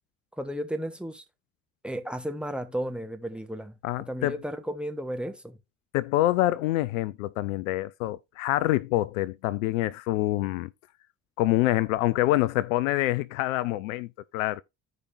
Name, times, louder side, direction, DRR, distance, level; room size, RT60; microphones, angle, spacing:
voice 1, 0.4-1.2 1.8-3.8 4.1-5.6, equal, ahead, 1.2 m, -33 dB
voice 2, 3.8-4.4 5.9-10.7 11.4-14.6, left 16 dB, 65° left, 0.5 m, -26 dB
15.0 x 5.0 x 2.5 m
figure-of-eight pair, 50°, 43 cm